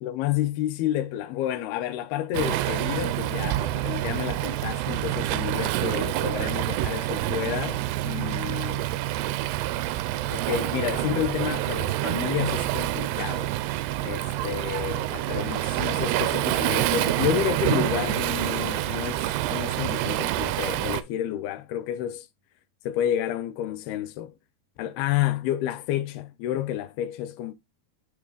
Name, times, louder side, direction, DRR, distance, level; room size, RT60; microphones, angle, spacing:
voice 1, 0.0-8.9 10.3-13.5 14.0-22.3 22.8-24.3 24.8-27.5, left 12 dB, 85° left, 2.5 m, -30 dB
Waves surf, 2.3-21.0, right 15 dB, 90° right, 2.6 m, -27 dB
Bowed string instrument, 16.7-22.0, left 1 dB, 70° right, 0.9 m, -54 dB
9.0 x 3.2 x 3.8 m
omnidirectional pair, 4.6 m